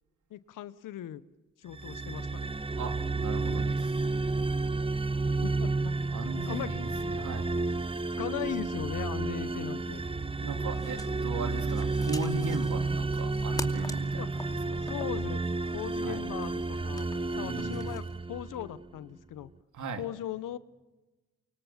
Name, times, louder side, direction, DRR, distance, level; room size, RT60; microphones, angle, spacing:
voice 1, 0.3-1.2 1.6-2.5 5.4-6.7 8.2-10.0 14.2-14.3 14.8-15.4 15.7-17.1 17.4-19.5 20.0-20.6, left 12 dB, 90° left, 16 dB, 1.0 m, -38 dB
sound 1, 1.7-18.8, right 3 dB, 15° right, 1.0 m, -31 dB
voice 2, 2.8-4.1 6.1-7.5 10.4-14.8 16.0-16.2 17.4-17.9 19.7-20.1, right 4 dB, 70° right, 6 dB, 3.1 m, -38 dB
sound 2, 10.6-18.2, left 1 dB, 10° left, 2.6 m, -47 dB
28.5 x 25.0 x 7.5 m, 1.2 s
supercardioid pair, 50°, 31 cm